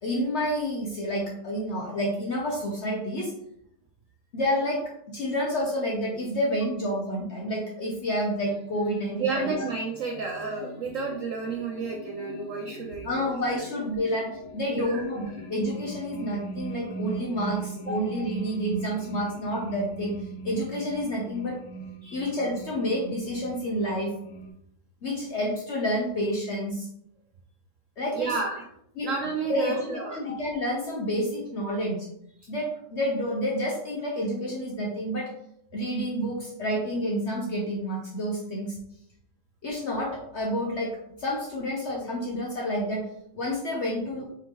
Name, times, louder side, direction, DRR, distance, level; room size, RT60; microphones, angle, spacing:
voice 1, 0.0-3.3 4.3-9.6 13.0-21.6 22.1-24.2 25.0-26.9 28.0-28.4 28.9-29.1 29.4-32.1 32.5-35.3 35.7-38.8 39.6-43.0 43.3-44.3, equal, 55° left, -3 dB, 0.8 m, -29 dB
sound 1, 8.4-24.5, right 3 dB, 90° left, 1.4 m, -40 dB
voice 2, 9.2-13.3 14.7-15.0 16.8-16.9 22.0-22.3 28.1-28.6 29.0-30.2, right 4 dB, 70° right, 0 dB, 0.7 m, -31 dB
3.7 x 3.6 x 3.0 m, 0.74 s
omnidirectional pair, 1.9 m